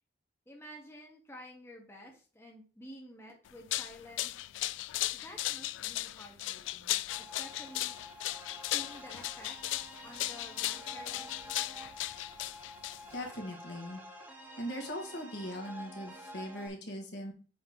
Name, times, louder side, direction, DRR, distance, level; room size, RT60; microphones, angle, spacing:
voice 1, 0.5-4.3 5.1-8.0 8.7-11.5, left 1 dB, 15° left, 0 dB, 1.3 m, -51 dB
sound 1, 3.5-13.3, left 16 dB, 85° left, 0.3 m, -36 dB
sound 2, 7.1-16.7, equal, 10° right, 1.5 m, -49 dB
voice 2, 13.1-14.0 14.6-17.3, equal, 65° left, 1 dB, 2.1 m, -40 dB
7.7 x 3.2 x 5.4 m, 0.37 s
head